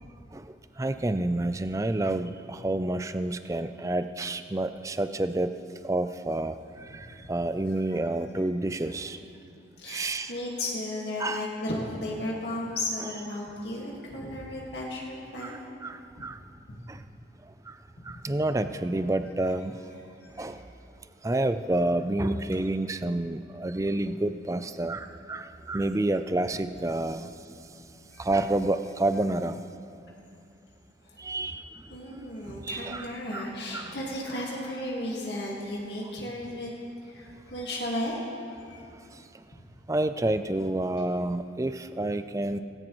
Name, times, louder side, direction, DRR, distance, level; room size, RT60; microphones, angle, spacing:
voice 1, 0.3-5.6 5.8-9.2 9.9-10.3 11.2-11.5 15.4-16.4 16.9-17.0 17.5-17.8 18.0-19.8 20.4-20.6 21.2-27.3 28.2-29.6 31.2-33.5 33.7-33.9 39.1-39.3 39.9-42.6, right 2 dB, 15° right, 11 dB, 0.4 m, -29 dB
voice 2, 9.8-15.6 18.0-18.2 20.2-20.6 28.1-28.3 31.0-31.2 31.9-36.7 37.0-38.8, left 1 dB, 60° left, -3 dB, 1.8 m, -34 dB
18.0 x 17.0 x 3.1 m, 2.5 s
head